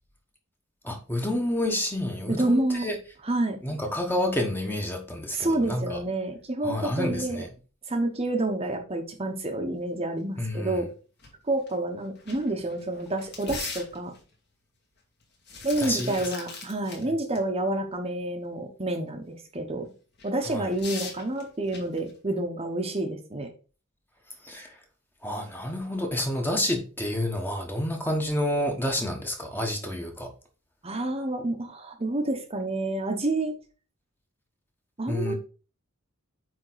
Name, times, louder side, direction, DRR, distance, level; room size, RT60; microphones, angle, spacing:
voice 1, 0.8-3.0 3.6-6.0 6.6-7.5 10.4-10.8 15.8-16.3 20.5-20.7 24.4-24.8 25.2-30.3 35.1-35.3, left 1 dB, 10° left, 1.1 m, -29 dB
voice 2, 2.3-2.8 3.3-3.6 5.3-7.4 7.9-10.9 11.4-14.1 15.6-19.9 20.2-23.5 30.8-33.5 35.0-35.3, right 2 dB, 30° right, 0.9 m, -28 dB
sound 1, 11.2-11.3 11.7-11.8 12.2-14.3 15.2-17.0 17.4-17.5 20.2-22.1, left 4 dB, 50° left, 2.0 m, -40 dB
8.9 x 3.6 x 3.9 m
head